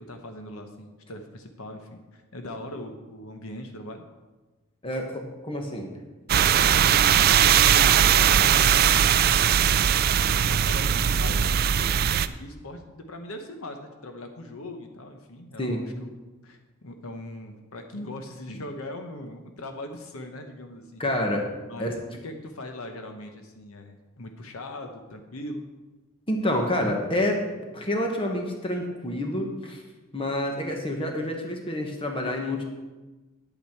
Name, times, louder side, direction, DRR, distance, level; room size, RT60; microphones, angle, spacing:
voice 1, 0.0-4.0 6.9-9.3 10.5-16.1 16.4-21.0 21.7-25.7, left 1 dB, 70° left, 5 dB, 1.0 m, -40 dB
voice 2, 4.8-5.9 15.6-15.8 21.0-21.5 21.8-21.9 26.3-27.4 27.7-29.8 30.1-32.6, left 1 dB, 25° left, 2 dB, 1.3 m, -28 dB
sound 1, 6.3-12.3, right 9 dB, 45° right, 0.3 m, -20 dB
10.5 x 8.4 x 4.5 m, 1.2 s
head